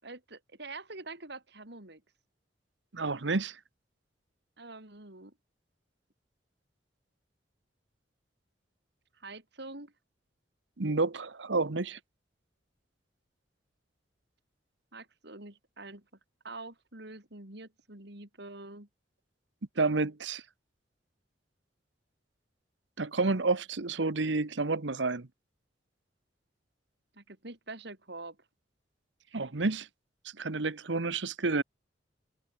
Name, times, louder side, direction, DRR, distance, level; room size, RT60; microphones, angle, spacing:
voice 1, 0.0-2.0 4.6-5.3 9.1-9.9 14.9-16.0 16.4-18.9 27.1-28.4, right 2 dB, 65° right, 4.2 m, -45 dB
voice 2, 2.9-3.6 10.8-12.0 19.8-20.4 23.0-25.3 29.3-29.9 30.4-31.6, right 3 dB, 85° right, 1.2 m, -30 dB
head